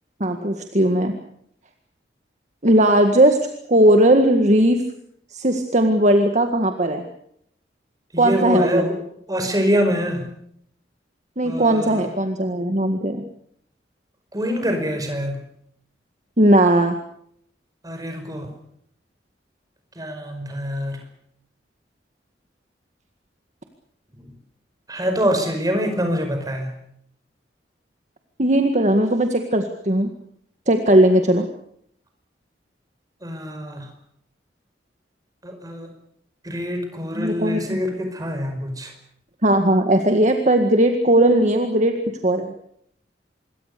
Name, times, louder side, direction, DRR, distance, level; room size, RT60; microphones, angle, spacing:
voice 1, 0.2-1.1 2.6-4.9 5.3-7.1 8.2-8.9 11.4-13.2 16.4-17.0 28.4-30.1 30.7-31.4 37.1-37.8 39.4-42.0 42.2-42.5, right 1 dB, 40° right, 5 dB, 1.9 m, -18 dB
voice 2, 8.1-9.0 9.3-10.3 11.4-12.0 14.3-15.4 17.8-18.5 20.0-21.0 24.9-26.7 33.2-33.9 35.4-35.9 36.4-38.9, equal, 20° right, 6 dB, 5.2 m, -25 dB
26.5 x 22.5 x 6.8 m, 0.70 s
head